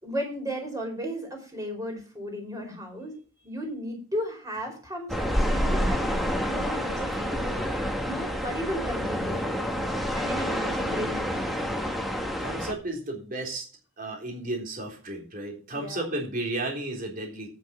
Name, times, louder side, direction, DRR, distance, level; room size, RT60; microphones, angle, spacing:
voice 1, 0.0-3.1 3.4-9.5 10.1-11.9 15.7-16.0, equal, 15° right, 1 dB, 4.6 m, -35 dB
sound 1, 5.1-12.7, equal, ahead, 1.6 m, -28 dB
voice 2, 10.2-10.7 12.4-13.7 14.0-17.5, right 2 dB, 45° right, 1 dB, 3.8 m, -34 dB
9.3 x 7.6 x 6.2 m, 0.36 s
head